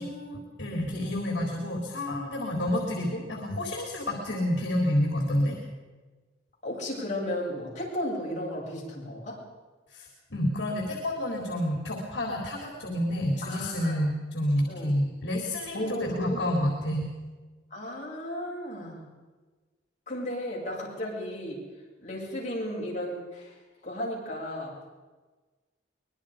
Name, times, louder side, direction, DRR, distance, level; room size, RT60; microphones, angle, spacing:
voice 1, 0.0-5.6 9.9-17.1, left 1 dB, 70° left, 0 dB, 4.0 m, -29 dB
voice 2, 6.6-9.4 13.4-14.0 14.7-14.9 15.7-16.4 17.7-19.1 20.1-21.6 22.0-23.5 23.8-24.7, equal, 40° left, -4 dB, 8.0 m, -34 dB
24.5 x 21.5 x 5.2 m, 1.3 s
head